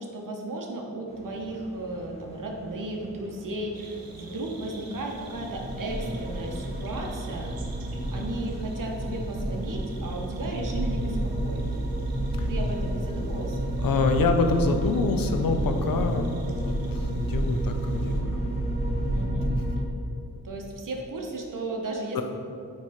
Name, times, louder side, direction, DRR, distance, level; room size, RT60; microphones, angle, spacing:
voice 1, 0.0-7.5 8.1-11.7 12.5-13.7 19.1-19.5 20.4-22.2, right 2 dB, 65° right, 1 dB, 1.1 m, -35 dB
sound 1, 1.1-19.3, right 1 dB, 15° left, 1.1 m, -46 dB
sound 2, 3.7-18.2, right 3 dB, 85° right, 0.8 m, -49 dB
sound 3, 5.2-19.8, right 1 dB, 30° right, 0.9 m, -30 dB
voice 2, 13.8-18.4 19.5-19.6 22.1-22.2, left 3 dB, 70° left, 6 dB, 0.7 m, -26 dB
8.7 x 3.3 x 4.2 m, 2.5 s
cardioid pair, 65°, 35 cm